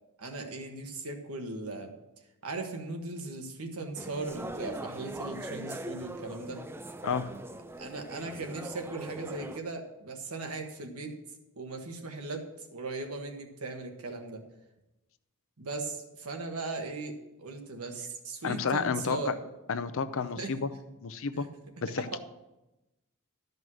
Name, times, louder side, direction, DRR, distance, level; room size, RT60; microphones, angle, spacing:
voice 1, 0.2-1.9 2.4-6.6 7.8-11.2 11.6-14.4 15.6-19.3 20.4-20.5 21.3-21.5 22.1-22.2, right 3 dB, 80° right, 4 dB, 1.4 m, -38 dB
sound 1, 4.0-9.6, right 1 dB, 10° right, 0.4 m, -41 dB
voice 2, 18.4-19.3 19.7-20.7 21.0-21.5 21.8-22.1, left 5 dB, 65° left, 12 dB, 0.6 m, -30 dB
12.5 x 5.3 x 6.2 m, 0.97 s
head